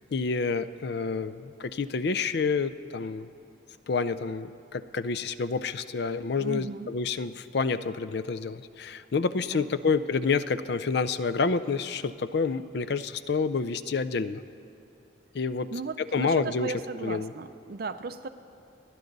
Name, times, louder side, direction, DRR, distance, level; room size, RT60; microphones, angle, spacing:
voice 1, 0.1-3.3 3.9-14.4 15.3-15.7 16.0-17.3, left 4 dB, 55° left, 14 dB, 0.4 m, -28 dB
voice 2, 6.4-6.9 9.5-9.9 15.7-18.3, right 3 dB, 50° right, 10 dB, 0.5 m, -36 dB
28.0 x 11.0 x 4.0 m, 2.6 s
head